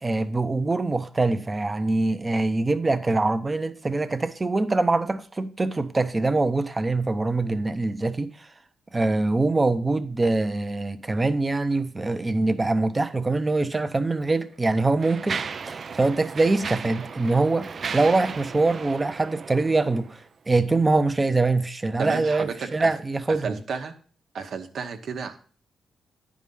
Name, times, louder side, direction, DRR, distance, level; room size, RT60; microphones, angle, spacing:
voice 1, 0.0-8.3 8.9-15.4 15.7-17.7 17.9-20.1 20.5-23.6, right 3 dB, 25° right, 0.7 m, -23 dB
Mechanisms, 13.6-13.8 14.5-20.3, right 5 dB, 50° right, 0.4 m, -36 dB
voice 2, 22.0-22.9 23.3-23.9 24.3-25.4, right 5 dB, 65° right, 1.1 m, -32 dB
9.8 x 5.0 x 5.4 m
cardioid pair, 90°, 0 cm